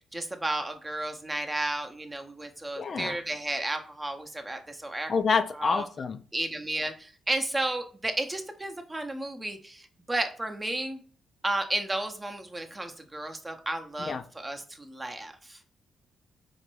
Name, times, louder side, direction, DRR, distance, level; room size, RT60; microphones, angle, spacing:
voice 1, 0.1-5.1 5.6-5.8 6.3-11.0 11.4-15.6, right 1 dB, 20° right, 5 dB, 0.6 m, -33 dB
voice 2, 2.8-3.2 5.1-6.2 14.0-14.2, left 5 dB, 50° left, 9 dB, 0.3 m, -27 dB
3.8 x 2.2 x 3.1 m, 0.41 s
hypercardioid pair, 50°, 0 cm